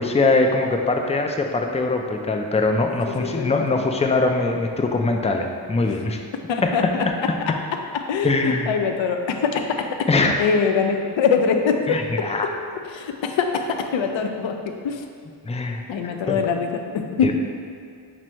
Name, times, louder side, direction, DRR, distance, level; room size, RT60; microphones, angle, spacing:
voice 1, 0.0-6.2 6.6-7.1 8.2-8.8 10.1-10.4 11.9-12.5 15.5-15.8 16.3-16.4 17.2-17.3, left 3 dB, 15° left, 3 dB, 0.3 m, -22 dB
voice 2, 2.9-3.9 5.8-5.9 6.5-7.1 7.9-12.0 12.8-14.6 14.8-15.0 15.9-17.3, left 5 dB, 70° left, 5 dB, 0.5 m, -23 dB
6.0 x 2.0 x 4.3 m, 2.2 s
cardioid pair, 45°, 47 cm